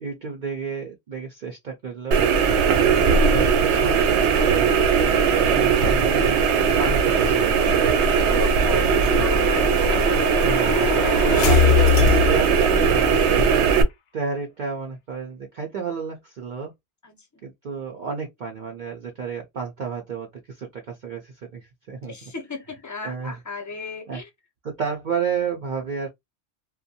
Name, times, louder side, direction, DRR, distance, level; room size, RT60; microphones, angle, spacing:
voice 1, 0.0-2.2 3.3-4.8 5.4-6.5 6.8-7.9 10.4-10.9 11.3-13.6 14.1-16.7 17.4-22.1 23.0-23.4 24.1-24.2 24.6-26.1, right 5 dB, 55° right, 0.6 m, -31 dB
sound 1, 2.1-13.8, right 6 dB, 85° right, 0.9 m, -19 dB
voice 2, 2.7-3.1 5.2-5.6 8.4-10.3 17.0-17.4 22.1-24.3, left 3 dB, 25° left, 0.5 m, -35 dB
sound 2, 6.5-13.3, left 10 dB, 75° left, 0.8 m, -25 dB
2.6 x 2.2 x 2.6 m
omnidirectional pair, 1.1 m